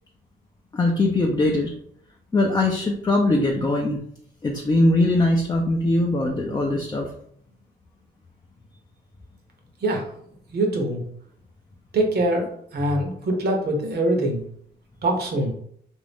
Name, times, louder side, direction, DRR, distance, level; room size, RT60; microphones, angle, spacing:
voice 1, 0.7-1.7 2.3-4.0 4.4-7.1, left 2 dB, 20° left, 0 dB, 0.5 m, -21 dB
voice 2, 10.5-11.0 11.9-14.4 15.0-15.5, right 1 dB, 55° right, 2 dB, 0.9 m, -23 dB
2.6 x 2.4 x 3.4 m, 0.66 s
cardioid pair, 90°, 20 cm